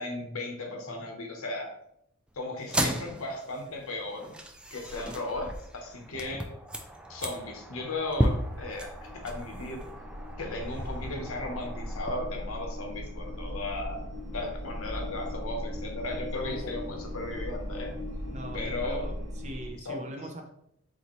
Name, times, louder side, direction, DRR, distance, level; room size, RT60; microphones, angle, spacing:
voice 1, 0.0-1.7 2.4-4.4 4.7-6.5 7.1-9.9 10.4-14.0 14.3-17.9 18.5-19.1 19.8-20.1, left 2 dB, 70° left, 3 dB, 1.0 m, -36 dB
sound 1, 2.6-12.2, right 1 dB, 5° right, 0.3 m, -35 dB
sound 2, 8.1-19.7, equal, 65° right, 1.0 m, -38 dB
voice 2, 18.3-20.5, equal, 30° right, 3 dB, 0.7 m, -41 dB
4.1 x 4.0 x 3.1 m, 0.75 s
head